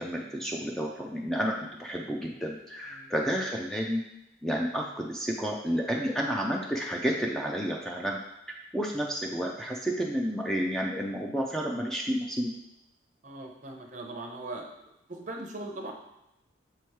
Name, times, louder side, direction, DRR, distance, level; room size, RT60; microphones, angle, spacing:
voice 1, 0.0-1.5 1.8-4.0 4.4-8.2 8.7-12.5, equal, 5° left, -1 dB, 0.4 m, -30 dB
voice 2, 13.2-14.7 15.1-15.9, right 2 dB, 40° right, 2 dB, 0.8 m, -39 dB
7.0 x 3.1 x 4.6 m, 0.87 s
head